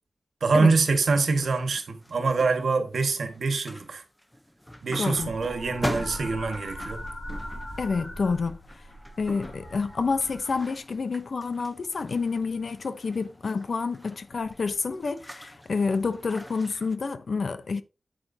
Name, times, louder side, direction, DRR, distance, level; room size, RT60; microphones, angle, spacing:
voice 1, 0.4-4.0 4.8-7.0, right 4 dB, 90° right, 1.6 m, -25 dB
sound 1, 1.0-2.9 3.3-3.9 4.2-17.0, equal, 5° left, 0.7 m, -42 dB
voice 2, 5.0-5.3 7.8-8.6 9.2-17.8, left 4 dB, 65° left, 0.8 m, -28 dB
sound 2, 5.2-11.0 12.2-12.7 14.4-14.6, left 1 dB, 35° left, 5.4 m, -40 dB
8.9 x 8.5 x 2.8 m
wide cardioid pair, 125°, 0 cm